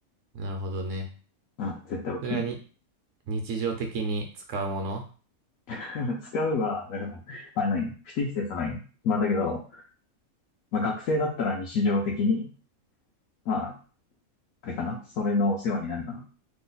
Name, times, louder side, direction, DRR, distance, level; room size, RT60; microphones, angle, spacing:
voice 1, 0.3-1.1 2.2-2.5 3.3-5.1, right 3 dB, 65° right, 3 dB, 0.9 m, -31 dB
voice 2, 1.6-2.4 5.7-7.9 8.2-8.8 9.0-9.8 10.7-12.5 13.5-13.7 14.6-16.2, left 3 dB, 75° left, -1 dB, 1.0 m, -28 dB
3.0 x 2.0 x 3.8 m, 0.38 s
omnidirectional pair, 1.5 m